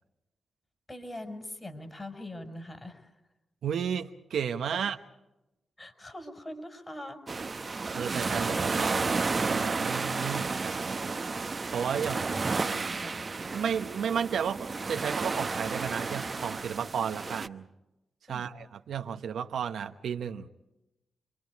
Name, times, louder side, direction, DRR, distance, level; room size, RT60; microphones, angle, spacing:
voice 1, 0.9-3.1 4.7-4.8 5.8-7.2 8.3-8.5 12.1-13.2 18.3-18.5, left 1 dB, 25° left, 6 dB, 5.0 m, -43 dB
voice 2, 3.6-5.0 7.9-11.2 11.7-12.2 12.5-12.9 13.5-17.7 18.3-20.5, right 8 dB, 80° right, 7 dB, 1.0 m, -33 dB
sound 1, 7.3-17.5, right 4 dB, 45° right, 0.9 m, -32 dB
29.5 x 23.5 x 4.8 m, 0.91 s
supercardioid pair, 50°, 0 cm